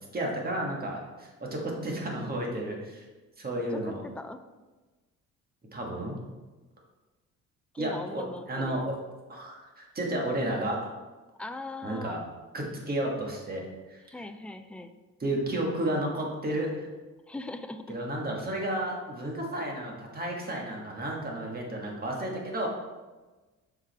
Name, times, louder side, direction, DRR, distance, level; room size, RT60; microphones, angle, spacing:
voice 1, 0.1-3.0 3.4-4.0 5.7-6.2 7.8-9.0 9.3-10.8 11.8-12.2 12.5-14.0 15.2-16.9 17.9-22.7, right 1 dB, 30° right, -1 dB, 1.5 m, -32 dB
voice 2, 3.7-4.4 7.7-8.9 11.4-12.3 14.1-14.9 17.3-17.9, left 2 dB, 5° left, 8 dB, 0.3 m, -40 dB
7.1 x 4.9 x 3.4 m, 1.2 s
cardioid pair, 120°, 30 cm